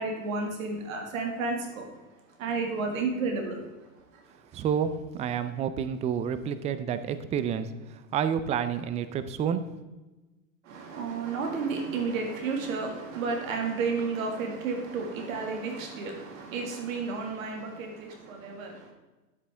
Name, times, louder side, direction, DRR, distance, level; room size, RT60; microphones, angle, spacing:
voice 1, 0.0-2.0 2.4-3.7 4.0-4.2 10.6-18.9, right 4 dB, 70° right, 3 dB, 2.0 m, -32 dB
voice 2, 4.5-7.7 8.1-9.7, right 8 dB, 15° right, 12 dB, 0.4 m, -29 dB
10.0 x 8.3 x 3.4 m, 1.1 s
hypercardioid pair, 105°, 42 cm